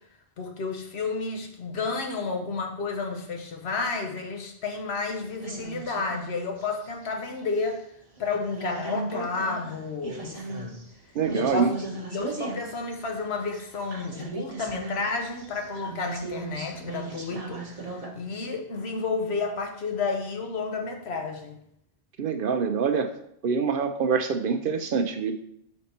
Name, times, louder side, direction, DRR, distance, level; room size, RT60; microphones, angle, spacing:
voice 1, 0.4-7.8 8.2-10.8 11.3-21.6, left 4 dB, 75° left, 4 dB, 1.1 m, -31 dB
sound 1, 4.9-6.2 6.6-7.7 8.2-18.1, right 3 dB, 35° right, 1.1 m, -37 dB
voice 2, 11.2-11.7 22.2-23.1 23.4-25.3, right 6 dB, 65° right, 7 dB, 0.7 m, -25 dB
5.3 x 4.3 x 4.3 m, 0.72 s
omnidirectional pair, 1.1 m